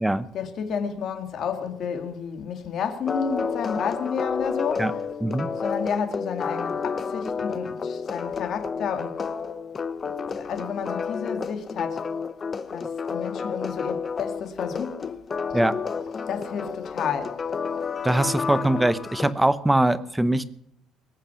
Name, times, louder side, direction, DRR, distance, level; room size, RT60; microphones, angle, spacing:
voice 1, 0.3-4.9 5.6-9.2 10.3-12.0 12.7-15.3 16.3-17.4, left 7 dB, 55° left, 2.1 m, -31 dB
sound 1, 3.0-19.3, left 5 dB, 30° left, 0.9 m, -31 dB
voice 2, 18.0-20.5, right 1 dB, 5° right, 0.8 m, -22 dB
21.0 x 9.0 x 7.0 m
cardioid pair, 145°, 0 cm